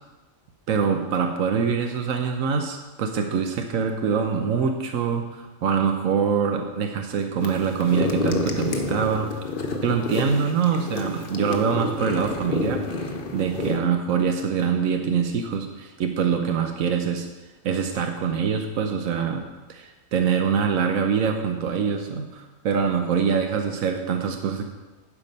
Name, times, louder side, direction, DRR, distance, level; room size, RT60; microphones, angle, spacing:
voice 1, 0.7-9.4 9.8-17.3 17.6-24.7, right 6 dB, 85° right, 4 dB, 1.2 m, -24 dB
sound 1, 7.4-13.8, left 3 dB, 45° left, 1.0 m, -29 dB
11.5 x 4.9 x 5.4 m, 1.1 s
omnidirectional pair, 1.4 m